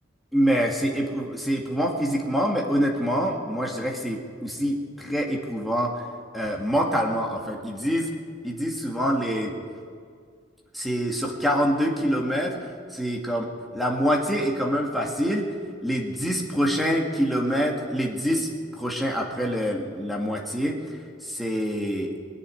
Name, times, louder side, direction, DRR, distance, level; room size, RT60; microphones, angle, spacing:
voice 1, 0.3-5.9 6.3-8.1 8.4-9.5 10.7-12.6 12.9-13.4 13.7-15.5 15.8-18.5 18.8-20.8 21.2-22.1, equal, ahead, -1 dB, 1.8 m, -25 dB
20.5 x 7.1 x 9.6 m, 2.1 s
head